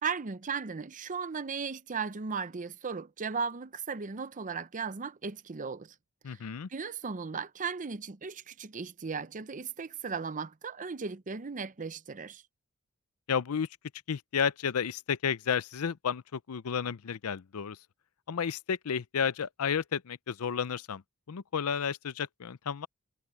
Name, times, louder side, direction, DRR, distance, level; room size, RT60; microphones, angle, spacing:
voice 1, 0.0-5.9 6.3-6.4 6.7-12.4, right 5 dB, 35° right, 0.7 m, -36 dB
voice 2, 6.2-6.7 13.3-13.7 14.1-17.8 18.3-21.0 21.3-22.9, left 7 dB, 80° left, 0.5 m, -32 dB
head